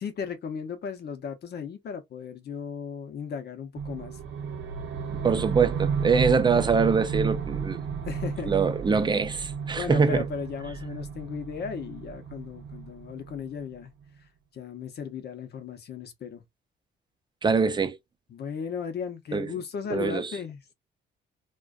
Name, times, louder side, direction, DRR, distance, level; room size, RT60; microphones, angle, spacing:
voice 1, 0.0-4.2 8.1-8.6 9.8-13.9 14.5-16.4 18.3-20.7, left 6 dB, 55° left, 0.7 m, -36 dB
sound 1, 3.8-13.8, right 6 dB, 65° right, 0.6 m, -33 dB
voice 2, 5.2-7.8 8.5-10.3 17.4-18.0 19.3-19.5 19.9-20.3, right 5 dB, 20° right, 0.5 m, -24 dB
2.4 x 2.2 x 2.3 m
cardioid pair, 90°, 20 cm